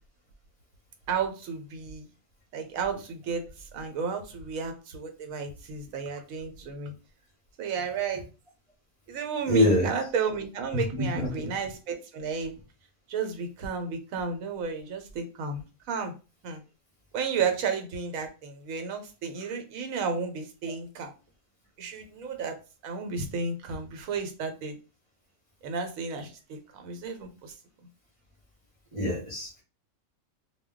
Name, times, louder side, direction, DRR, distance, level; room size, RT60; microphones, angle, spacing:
voice 1, 1.1-2.1 2.5-6.9 7.6-8.3 9.1-12.5 13.1-16.1 16.4-16.6 17.1-21.1 21.8-22.6 22.8-24.8 25.6-27.5, right 5 dB, 75° right, 5 dB, 1.0 m, -32 dB
voice 2, 9.5-9.9 11.0-11.1 28.9-29.6, left 1 dB, 30° right, -2 dB, 0.7 m, -24 dB
2.2 x 2.2 x 3.6 m, 0.31 s
omnidirectional pair, 1.5 m